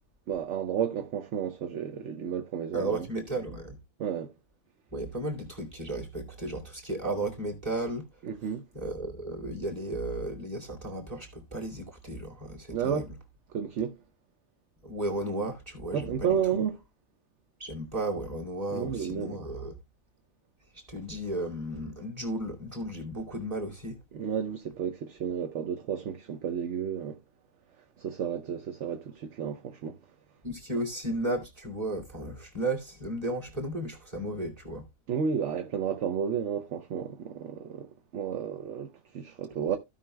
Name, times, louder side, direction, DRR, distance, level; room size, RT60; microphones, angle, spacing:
voice 1, 0.3-3.1 4.0-4.3 8.2-8.6 12.7-13.1 13.5-14.0 15.9-16.8 18.7-19.4 24.1-27.2 28.0-30.0 35.1-37.9 38.1-39.8, right 8 dB, 60° right, 0.9 m, -32 dB
voice 2, 2.7-3.8 4.9-8.1 8.7-13.1 14.8-16.4 17.6-19.7 20.9-24.0 30.4-34.9 39.7-39.8, right 1 dB, 25° right, 2.5 m, -34 dB
15.5 x 5.6 x 2.2 m
omnidirectional pair, 1.5 m